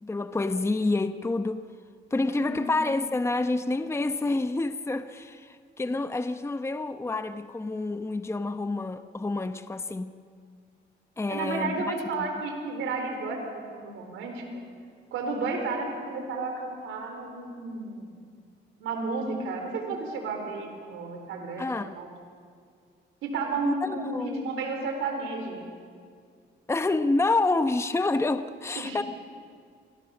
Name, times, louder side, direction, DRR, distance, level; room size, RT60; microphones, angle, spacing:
voice 1, 0.0-1.7 2.1-10.2 11.2-11.7 12.2-12.3 21.6-22.0 23.7-24.5 26.7-29.0, left 2 dB, 15° left, 0.8 m, -28 dB
voice 2, 11.3-14.4 15.1-18.1 18.8-21.7 21.9-22.1 23.2-25.6 28.8-29.0, right 3 dB, 85° right, 4.2 m, -32 dB
27.0 x 19.0 x 7.2 m
cardioid pair, 90°, 20 cm